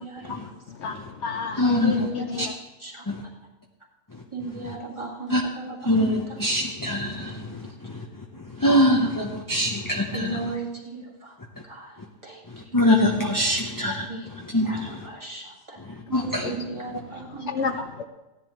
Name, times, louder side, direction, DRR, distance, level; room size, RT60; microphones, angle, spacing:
voice 1, 0.0-0.5 1.7-2.5 2.8-3.0 4.3-6.4 9.0-9.1 10.1-11.4 11.7-12.4 12.7-12.8 14.1-14.3 14.6-15.8 16.2-17.5, right 3 dB, 20° right, -3 dB, 2.1 m, -36 dB
voice 2, 0.7-2.5 16.4-16.5 17.5-18.1, left 5 dB, 65° left, 6 dB, 0.9 m, -31 dB
voice 3, 1.6-1.9 2.4-2.5 3.1-3.2 5.3-5.4 5.9-7.4 8.6-10.4 12.7-14.1 14.5-14.9 16.1-16.5, left 1 dB, 20° left, 0 dB, 0.6 m, -22 dB
16.0 x 10.5 x 3.1 m, 1.0 s
omnidirectional pair, 1.4 m